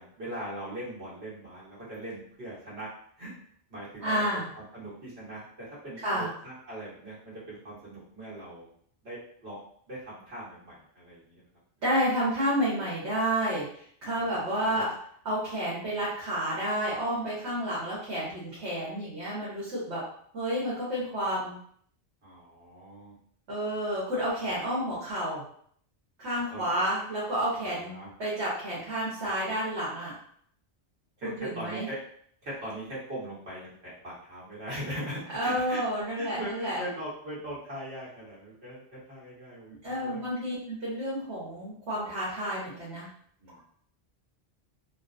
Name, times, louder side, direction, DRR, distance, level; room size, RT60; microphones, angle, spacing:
voice 1, 0.0-2.9 3.2-3.3 3.7-4.3 4.5-8.7 9.0-9.6 9.9-11.4 14.1-14.8 22.2-23.2 26.5-26.7 27.6-28.1 31.2-31.3 31.5-32.0 32.4-35.8 36.2-40.2 43.4-43.6, right 1 dB, 65° right, -7 dB, 1.5 m, -40 dB
voice 2, 4.0-4.5 6.0-6.3 11.8-13.7 14.0-14.9 15.2-20.0 20.3-21.5 23.5-25.4 26.2-27.9 28.2-30.1 31.2-31.9 35.3-36.8 39.8-43.1, equal, 85° right, -8 dB, 1.3 m, -30 dB
3.7 x 2.0 x 2.5 m, 0.62 s
omnidirectional pair, 1.1 m